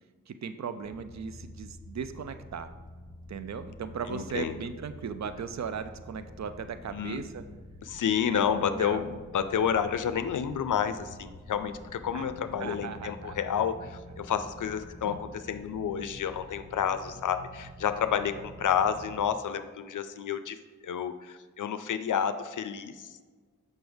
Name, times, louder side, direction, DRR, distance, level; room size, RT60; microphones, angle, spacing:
voice 1, 0.3-2.7 3.3-7.4 8.3-8.4 8.8-9.0 12.1-12.3 12.6-13.7 15.0-15.2, right 6 dB, 55° right, 10 dB, 0.5 m, -37 dB
sound 1, 0.8-19.2, equal, 25° right, 1.2 m, -48 dB
voice 2, 4.1-4.6 6.9-7.2 7.8-23.2, left 8 dB, 70° left, 10 dB, 0.5 m, -30 dB
6.1 x 5.4 x 3.5 m, 1.4 s
cardioid pair, 40°, 33 cm